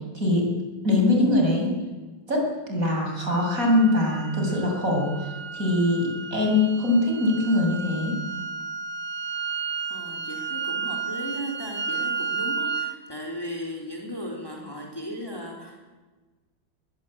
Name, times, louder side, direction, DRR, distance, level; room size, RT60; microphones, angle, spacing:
voice 1, 0.1-0.4 0.8-1.7 2.3-8.1, left 2 dB, 45° right, 0 dB, 7.5 m, -22 dB
sound 1, 3.3-13.0, right 5 dB, 70° right, 1.9 m, -33 dB
voice 2, 9.9-15.9, equal, 10° left, 0 dB, 4.1 m, -36 dB
23.0 x 21.5 x 8.9 m, 1.3 s
omnidirectional pair, 2.0 m